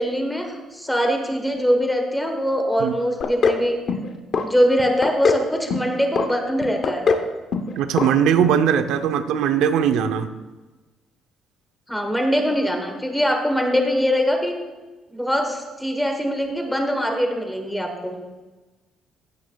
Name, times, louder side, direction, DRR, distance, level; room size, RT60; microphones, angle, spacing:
voice 1, 0.0-3.8 4.4-7.0 11.9-14.5 15.1-18.2, equal, 5° left, 3 dB, 1.1 m, -22 dB
sound 1, 3.2-3.6 3.9-4.5 4.8-5.4 5.7-6.3 6.6-7.3 7.5-7.7 8.0-8.1 8.4-8.5, left 5 dB, 35° left, 0.6 m, -21 dB
voice 2, 7.8-10.3, right 8 dB, 85° right, 9 dB, 0.6 m, -19 dB
15.0 x 9.5 x 2.3 m, 1.2 s
cardioid pair, 175°, 0 cm